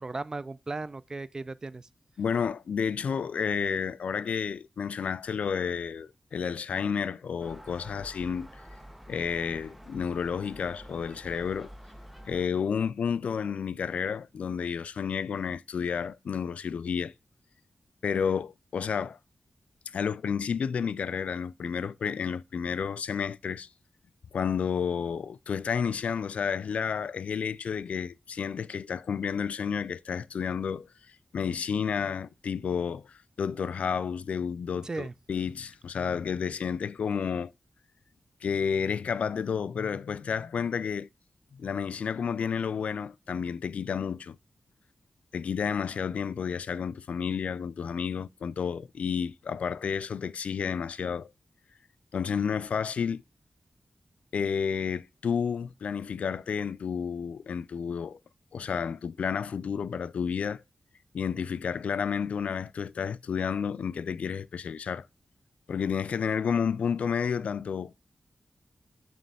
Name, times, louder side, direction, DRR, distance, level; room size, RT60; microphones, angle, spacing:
voice 1, 0.0-1.9 34.8-35.1, right 3 dB, 30° right, 0.4 m, -36 dB
voice 2, 2.2-8.5 9.1-11.7 12.2-17.1 18.0-19.2 19.9-23.7 24.3-30.9 31.3-37.5 38.4-41.1 41.5-44.4 45.3-51.3 52.1-53.2 54.3-58.2 58.5-60.6 61.1-65.1 65.7-67.9, left 6 dB, 90° left, 0.3 m, -31 dB
Gull seagull, 7.4-12.5, equal, 5° right, 0.7 m, -48 dB
7.5 x 3.1 x 5.4 m
wide cardioid pair, 130°, 2 cm